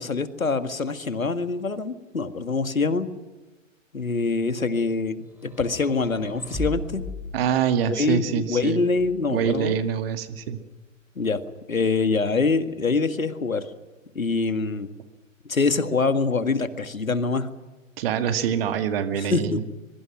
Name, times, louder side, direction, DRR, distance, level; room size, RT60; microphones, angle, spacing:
voice 1, 0.0-3.1 3.9-7.0 7.9-9.8 11.2-11.4 11.7-13.7 14.2-14.9 15.5-17.5 19.1-19.6, left 4 dB, 85° left, 10 dB, 2.0 m, -25 dB
sound 1, 5.3-8.1 9.0-9.9, equal, 5° right, 4.6 m, -37 dB
voice 2, 7.3-8.8 9.3-10.6 18.0-19.6, right 8 dB, 45° right, 9 dB, 2.2 m, -25 dB
24.0 x 23.0 x 6.1 m, 1.2 s
figure-of-eight pair, 120°, 40 cm